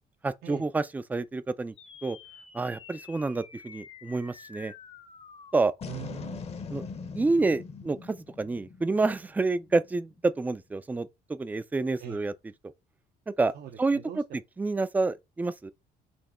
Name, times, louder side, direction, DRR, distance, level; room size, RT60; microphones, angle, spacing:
voice 1, 0.2-1.7 2.0-2.2 2.5-4.7 5.5-5.7 6.7-6.8 7.1-12.3 13.4-13.5 13.8-14.0 14.6-15.7, right 3 dB, 10° right, 0.3 m, -28 dB
sound 1, 1.8-10.4, left 5 dB, 40° left, 0.8 m, -44 dB
voice 2, 5.8-6.5 12.0-12.2 13.5-14.4, right 11 dB, 65° right, 0.7 m, -42 dB
4.3 x 2.7 x 4.3 m
cardioid pair, 110°, 17 cm